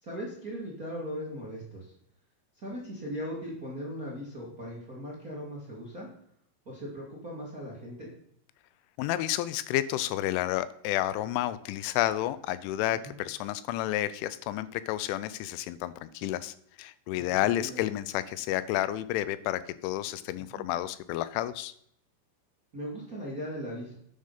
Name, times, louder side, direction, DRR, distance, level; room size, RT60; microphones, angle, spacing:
voice 1, 0.0-1.9 2.6-6.1 6.6-8.1 13.0-13.1 17.1-17.8 20.5-20.6 22.7-23.9, equal, 30° right, -4 dB, 1.7 m, -39 dB
voice 2, 9.0-21.7, left 14 dB, 85° left, 15 dB, 3.0 m, -31 dB
9.8 x 7.4 x 5.7 m, 0.68 s
omnidirectional pair, 5.5 m